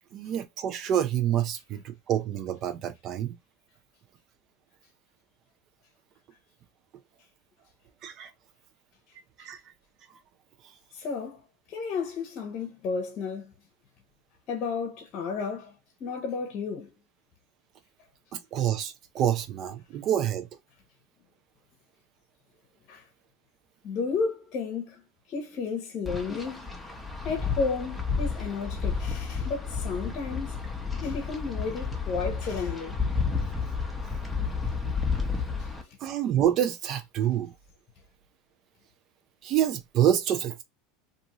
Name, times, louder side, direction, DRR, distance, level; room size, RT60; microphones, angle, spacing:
voice 1, 0.1-3.4 8.0-8.3 9.4-9.6 18.3-20.5 36.0-37.5 39.4-40.6, right 10 dB, 50° right, 0.6 m, -27 dB
voice 2, 10.9-11.4 11.7-13.5 14.5-15.7 16.0-16.9 22.9-23.0 23.8-25.0 25.3-26.7 27.2-30.6 31.0-33.0, left 5 dB, 45° left, 0.8 m, -32 dB
Wind, 26.1-35.8, left 5 dB, 5° left, 0.9 m, -31 dB
2.6 x 2.6 x 2.9 m
hypercardioid pair, 100°, 0 cm